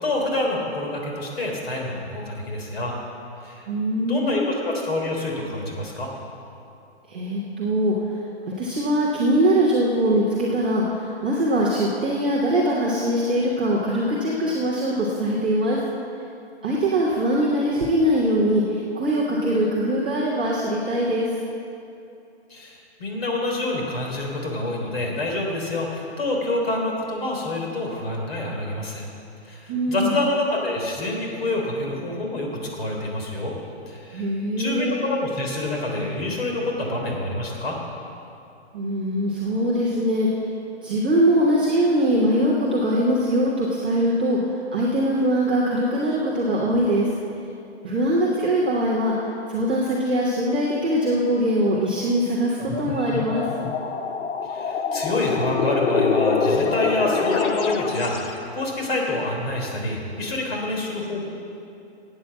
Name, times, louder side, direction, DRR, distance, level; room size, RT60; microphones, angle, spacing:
voice 1, 0.0-3.0 3.4-3.7 4.0-6.1 22.5-29.1 29.4-33.5 33.9-34.3 34.6-37.8 54.5-61.3, left 2 dB, 60° left, 0 dB, 3.5 m, -27 dB
voice 2, 3.7-4.5 7.1-7.9 8.5-15.8 16.6-21.3 29.7-30.2 34.1-35.0 38.7-40.4 40.8-47.1 47.8-49.1 49.5-53.5, equal, 10° right, -9 dB, 0.5 m, -22 dB
sound 1, 52.6-58.4, left 5 dB, 90° left, 1.0 m, -25 dB
13.0 x 8.8 x 7.2 m, 2.7 s
hypercardioid pair, 175°, 34 cm